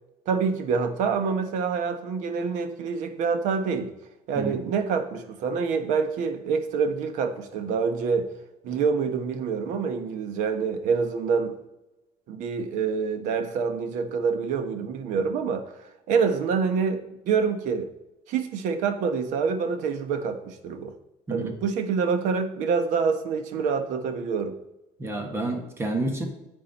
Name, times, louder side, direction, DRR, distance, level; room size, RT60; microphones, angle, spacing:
voice 1, 0.3-3.9 4.3-8.3 8.6-11.5 12.3-17.9 18.3-20.9 21.3-24.5, right 5 dB, 70° right, 9 dB, 1.2 m, -26 dB
voice 2, 25.0-26.3, right 2 dB, 20° right, 4 dB, 1.6 m, -29 dB
10.0 x 8.4 x 4.2 m, 0.95 s
cardioid pair, 170°, 13 cm